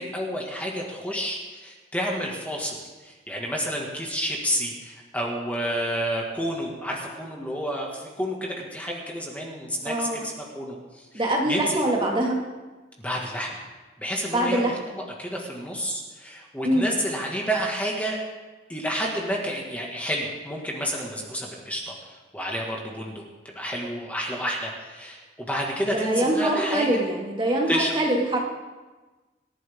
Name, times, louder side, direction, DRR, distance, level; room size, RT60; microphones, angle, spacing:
voice 1, 0.0-12.2 13.0-13.5 14.0-18.2 18.7-23.2 23.6-27.0 27.7-27.9, equal, 10° left, -2 dB, 1.9 m, -30 dB
voice 2, 9.8-10.2 11.1-12.4 14.3-14.8 16.6-16.9 25.9-28.4, right 1 dB, 25° right, -1 dB, 2.1 m, -24 dB
27.0 x 11.0 x 3.7 m, 1.3 s
head